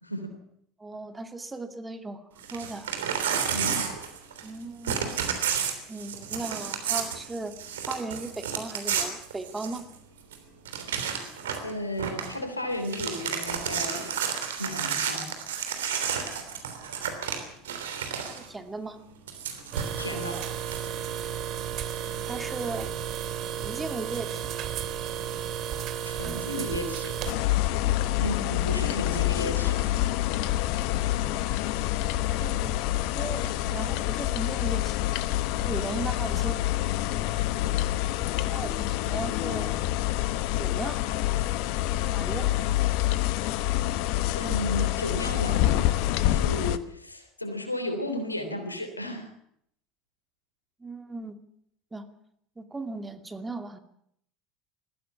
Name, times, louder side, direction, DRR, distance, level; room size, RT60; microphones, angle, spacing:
voice 1, 0.0-0.3 3.5-3.9 11.6-14.2 14.6-15.3 20.0-20.5 26.0-27.2 28.2-29.8 44.3-45.9 46.2-49.3, left 1 dB, 90° left, 7 dB, 3.3 m, -34 dB
voice 2, 0.8-2.9 4.4-5.0 5.9-7.5 7.9-9.8 18.3-19.0 22.3-22.9 23.6-24.5 27.8-28.0 31.2-31.4 32.4-34.9 35.5-36.6 38.4-39.8 40.6-41.0 42.1-42.5 50.8-51.4 51.9-52.0 52.6-53.8, right 3 dB, 15° right, 7 dB, 2.4 m, -37 dB
Crumpling crinkling / Tearing, 2.4-4.6 4.8-9.9 10.3-10.4 10.6-11.7 12.0-12.3 12.7-18.5 19.3-20.9, right 7 dB, 70° right, 3.3 m, -31 dB
sound 1, 19.7-27.3, right 9 dB, 45° right, 2.7 m, -33 dB
sound 2, 27.2-46.8, left 14 dB, 55° left, 1.1 m, -27 dB
21.0 x 15.5 x 8.6 m, 0.71 s
figure-of-eight pair, 70°, 0 cm